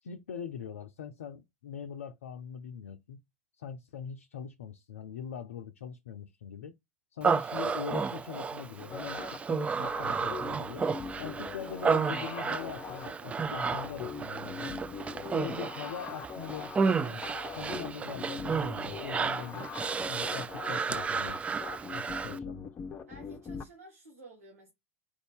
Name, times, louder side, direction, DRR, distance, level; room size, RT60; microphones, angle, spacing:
voice 1, 0.0-3.2 3.6-6.7 7.1-10.8 11.2-14.8 15.3-17.2 17.5-19.7 20.1-21.4 21.9-22.7, left 7 dB, 70° left, 0.5 m, -42 dB
Human voice, 7.2-22.4, right 5 dB, 15° right, 0.3 m, -32 dB
sound 1, 8.9-23.6, left 6 dB, 30° left, 0.7 m, -42 dB
voice 2, 23.1-24.7, right 2 dB, 80° right, 1.5 m, -52 dB
4.8 x 2.7 x 3.3 m
figure-of-eight pair, 80°, 8 cm